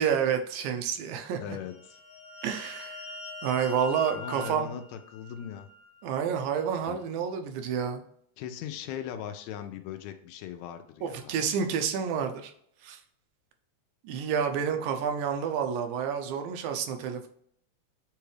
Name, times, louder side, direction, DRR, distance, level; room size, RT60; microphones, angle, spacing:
voice 1, 0.0-1.4 2.4-3.1 3.4-4.7 6.0-8.0 11.0-12.5 12.8-13.0 14.0-17.3, right 7 dB, 90° right, 6 dB, 2.1 m, -29 dB
voice 2, 1.4-2.0 4.1-5.7 6.9-7.0 8.4-11.3, left 9 dB, 80° left, 8 dB, 1.8 m, -39 dB
sound 1, 1.5-6.0, left 2 dB, 55° left, 0.8 m, -44 dB
7.0 x 2.4 x 3.2 m, 0.66 s
omnidirectional pair, 3.3 m